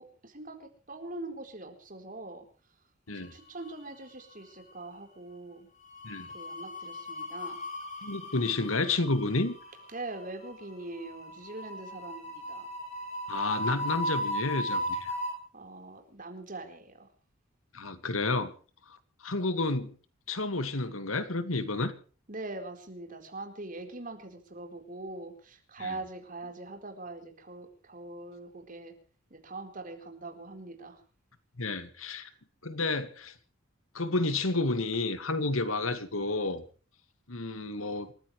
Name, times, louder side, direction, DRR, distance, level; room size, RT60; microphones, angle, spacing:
voice 1, 0.0-2.5 3.1-5.7 6.3-7.6 9.9-12.7 15.5-17.1 22.3-29.0 29.3-31.0 32.3-32.4, right 2 dB, 40° right, 4.3 m, -42 dB
sound 1, 3.3-4.1 4.3-4.6 5.8-15.3, equal, 35° left, 7.2 m, -37 dB
voice 2, 8.0-9.6 13.3-15.1 17.7-18.5 19.2-20.0 20.3-21.9 25.8-25.9 31.6-32.3 32.6-33.3 33.9-36.6 37.3-38.1, left 3 dB, 85° left, 2.1 m, -30 dB
28.0 x 15.0 x 3.3 m
head